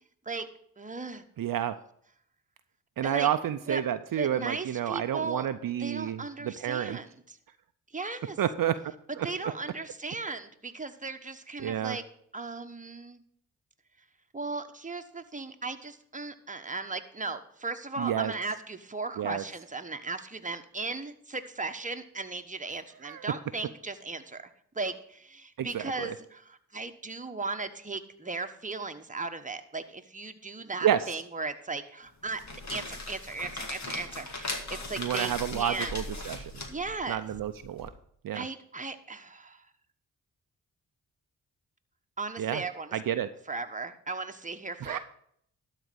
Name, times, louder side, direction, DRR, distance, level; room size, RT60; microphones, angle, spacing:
voice 1, 0.8-1.2 3.0-3.3 3.7-3.8 4.2-5.5 5.8-7.4 7.9-8.4 9.2-12.0 12.3-13.2 14.3-24.4 24.7-32.4 32.7-35.9 36.7-37.2 38.3-39.6 42.2-43.0 43.5-45.0, right 3 dB, 20° right, 6 dB, 1.2 m, -37 dB
voice 2, 1.4-1.7 3.0-7.0 8.4-8.8 9.2-9.3 11.6-12.0 18.0-18.3 19.2-19.4 23.0-23.3 25.6-26.1 30.8-31.2 35.0-36.5 37.1-37.9 38.2-38.5 42.4-42.6 42.9-43.3 44.8-45.0, right 10 dB, 60° right, 10 dB, 0.6 m, -30 dB
sound 1, 32.2-37.9, left 2 dB, 45° left, 2.3 m, -39 dB
12.5 x 4.2 x 7.9 m, 0.67 s
supercardioid pair, 45°, 38 cm